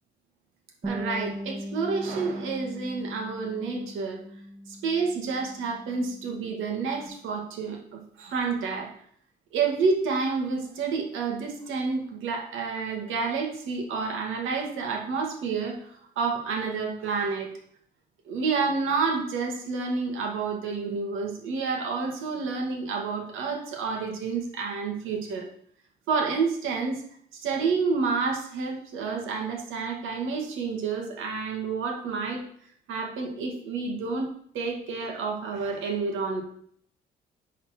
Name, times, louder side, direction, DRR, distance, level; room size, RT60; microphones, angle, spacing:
Bass guitar, 0.8-7.1, equal, 25° right, 1.8 m, -39 dB
voice 1, 0.8-4.2 4.7-8.9 9.5-17.5 18.3-25.5 26.1-27.0 27.3-32.4 32.9-34.3 34.5-36.4, right 4 dB, 85° right, 1 dB, 1.9 m, -29 dB
10.5 x 4.2 x 4.4 m, 0.64 s
cardioid pair, 90°, 20 cm